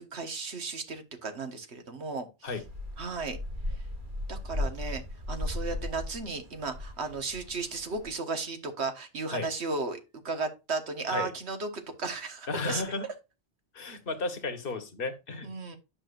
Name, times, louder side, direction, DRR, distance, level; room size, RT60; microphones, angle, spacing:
voice 1, 0.0-2.5 3.0-3.4 4.3-5.0 5.3-10.0 10.2-12.8 15.4-15.8, right 4 dB, 90° right, 1.6 m, -35 dB
sound 1, 2.5-8.1, left 1 dB, 50° right, 2.0 m, -37 dB
voice 2, 12.5-13.0 13.7-15.5, left 3 dB, 60° left, 1.4 m, -33 dB
9.8 x 6.1 x 2.5 m
omnidirectional pair, 1.1 m